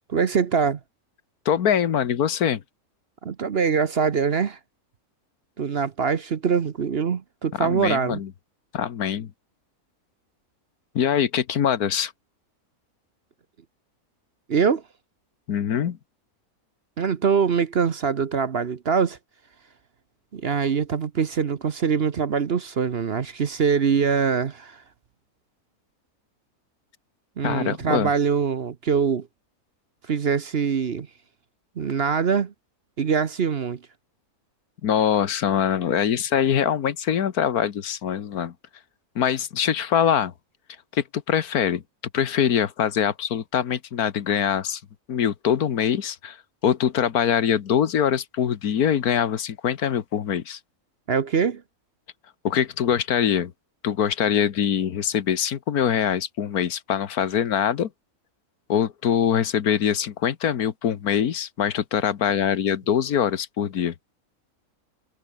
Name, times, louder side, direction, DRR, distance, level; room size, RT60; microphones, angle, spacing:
voice 1, 0.1-0.8 3.2-4.6 5.6-8.2 14.5-14.8 17.0-19.2 20.3-24.8 27.4-29.3 30.1-31.1 31.8-32.5 33.0-33.8 51.1-51.6, right 6 dB, 45° right, 1.0 m, -23 dB
voice 2, 1.4-2.6 7.5-8.3 8.7-9.3 10.9-12.1 15.5-16.0 27.4-28.1 34.8-38.5 39.1-40.3 40.9-41.8 42.1-44.8 45.1-46.4 46.6-50.6 52.4-53.5 53.8-57.9 58.7-63.9, left 8 dB, 75° left, 1.6 m, -23 dB
omnidirectional pair, 1.6 m